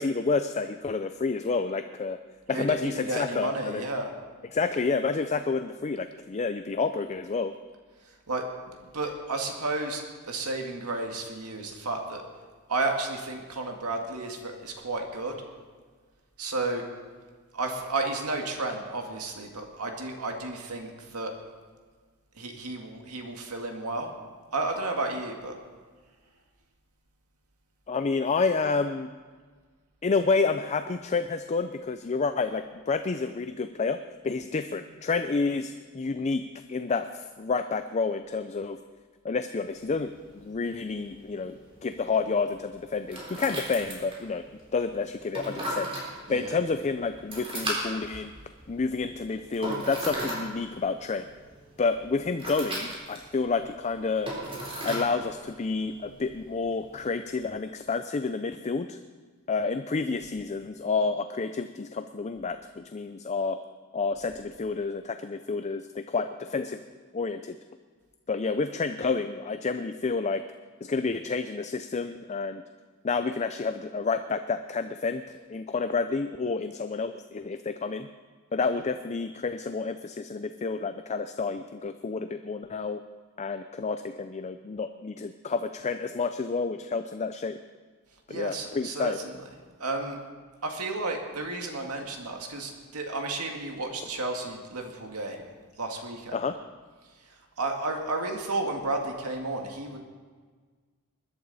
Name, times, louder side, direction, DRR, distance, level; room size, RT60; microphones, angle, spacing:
voice 1, 0.0-2.2 2.5-3.8 4.5-7.5 27.9-29.1 30.0-34.0 34.2-36.4 36.7-38.8 39.2-41.5 41.8-44.4 44.7-45.9 46.3-48.3 48.7-51.3 51.8-54.3 54.8-59.0 59.5-63.6 63.9-66.8 67.1-67.6 68.3-70.4 70.8-72.6 73.0-75.2 75.5-78.1 78.5-83.0 83.4-87.6 88.3-89.2 96.3-96.6, left 4 dB, 30° left, 9 dB, 0.4 m, -29 dB
voice 2, 2.5-4.1 8.0-12.2 12.7-15.3 16.4-16.9 17.5-21.3 22.4-24.1 24.5-25.5 46.3-46.6 88.3-89.5 89.8-90.2 90.6-95.5 95.8-96.4 97.6-100.0, right 2 dB, 85° right, 3 dB, 1.9 m, -32 dB
sound 1, 39.6-57.1, right 1 dB, 25° right, 3.7 m, -38 dB
21.0 x 11.5 x 4.1 m, 1.5 s
head